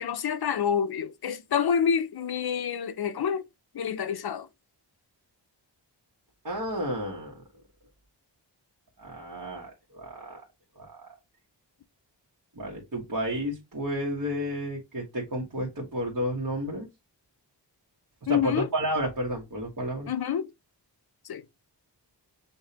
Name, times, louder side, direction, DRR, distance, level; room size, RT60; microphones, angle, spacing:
voice 1, 0.0-3.4 3.7-4.5 18.3-18.7 20.1-20.5 21.2-21.4, left 7 dB, 60° left, 0.6 m, -27 dB
voice 2, 6.4-7.4 9.0-10.4 10.8-11.1 12.5-16.9 18.3-20.1, equal, 50° right, 1.3 m, -31 dB
6.8 x 2.6 x 2.8 m
wide cardioid pair, 130°, 43 cm